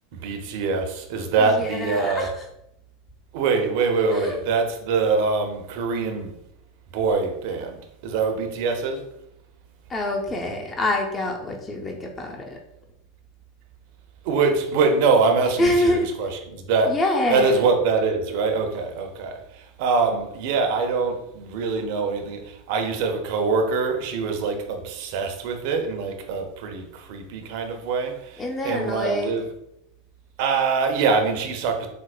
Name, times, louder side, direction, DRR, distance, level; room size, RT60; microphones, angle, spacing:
voice 1, 0.1-2.3 3.3-6.3 6.9-9.0 14.2-17.0 17.3-29.4 30.4-31.9, right 4 dB, 60° right, 0.5 m, -24 dB
voice 2, 1.4-2.5 4.1-4.4 9.9-12.6 15.6-16.1 16.9-17.6 28.4-29.4, left 1 dB, 25° left, 0.5 m, -26 dB
4.4 x 2.1 x 2.3 m
hypercardioid pair, 85°, 0 cm